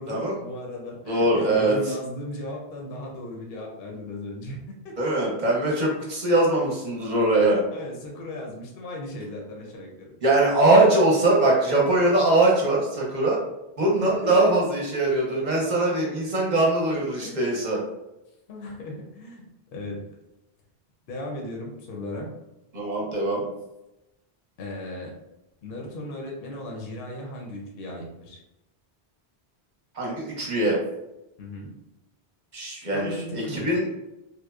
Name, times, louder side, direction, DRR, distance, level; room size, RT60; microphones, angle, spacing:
voice 1, 0.0-4.6 4.8-5.1 7.1-7.5 7.7-10.2 14.0-14.5 17.2-17.4 18.5-20.0 21.1-22.3 24.6-25.1 25.6-28.4 31.4-31.7 32.9-33.6, left 1 dB, 65° left, -1 dB, 0.7 m, -36 dB
voice 2, 1.1-1.8 5.0-7.6 10.2-13.4 13.8-17.8 22.7-23.5 29.9-30.8 32.5-33.9, right 2 dB, 50° right, -3 dB, 0.7 m, -22 dB
2.9 x 2.0 x 2.2 m, 0.93 s
omnidirectional pair, 1.1 m